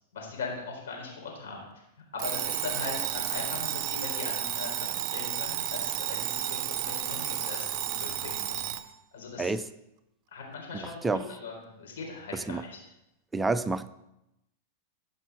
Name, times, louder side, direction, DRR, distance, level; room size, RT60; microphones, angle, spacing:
voice 1, 0.1-1.7 2.1-8.7 9.1-9.5 10.3-12.8, left 4 dB, 80° left, 0 dB, 4.0 m, -40 dB
Alarm, 2.2-8.9, right 12 dB, 45° right, 0.6 m, -32 dB
voice 2, 10.7-11.2 12.3-12.6 13.3-13.9, right 3 dB, 10° right, 13 dB, 0.4 m, -29 dB
15.5 x 5.4 x 4.7 m, 0.86 s
hypercardioid pair, 120°, 0 cm